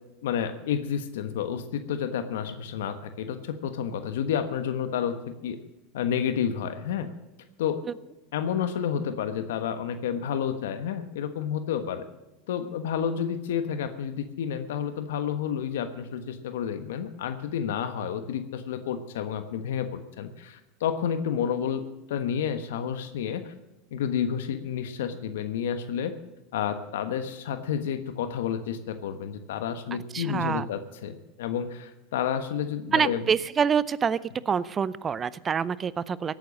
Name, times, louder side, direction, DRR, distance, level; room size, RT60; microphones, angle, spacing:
voice 1, 0.2-5.2 5.4-5.6 5.9-7.1 7.6-7.8 8.3-12.1 12.5-21.8 22.1-23.5 23.9-26.1 26.5-33.2, left 8 dB, 90° left, 9 dB, 1.3 m, -30 dB
voice 2, 30.1-30.7 32.9-34.2 34.5-36.4, right 7 dB, 25° right, 19 dB, 0.5 m, -26 dB
16.5 x 9.2 x 6.5 m, 1.0 s
supercardioid pair, 130°, 0 cm